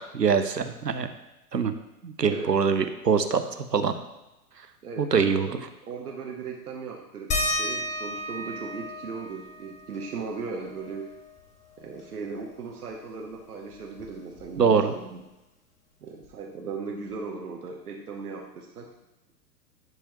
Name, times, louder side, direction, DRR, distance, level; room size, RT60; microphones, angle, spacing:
voice 1, 0.1-1.1 1.5-1.7 2.0-4.0 5.0-5.5 14.6-14.9, right 6 dB, 90° right, 9 dB, 0.7 m, -23 dB
voice 2, 4.8-5.6 5.9-11.1 11.8-15.2 16.0-18.9, right 4 dB, 70° right, 0 dB, 1.0 m, -37 dB
sound 1, 7.3-12.4 12.8-12.9 13.2-15.0 16.2-16.3 17.1-17.2, left 1 dB, 15° left, 1.0 m, -35 dB
10.5 x 4.7 x 3.0 m, 0.98 s
figure-of-eight pair, 105°, 48 cm